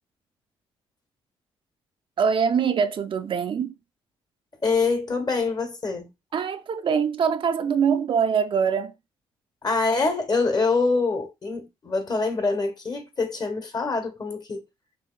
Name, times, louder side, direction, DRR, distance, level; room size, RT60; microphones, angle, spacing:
voice 1, 2.2-3.8 6.3-8.9, right 6 dB, 50° right, 0.4 m, -23 dB
voice 2, 4.6-6.1 9.6-14.6, left 3 dB, 40° left, 1.2 m, -25 dB
5.3 x 3.0 x 2.3 m
supercardioid pair, 60°, 11 cm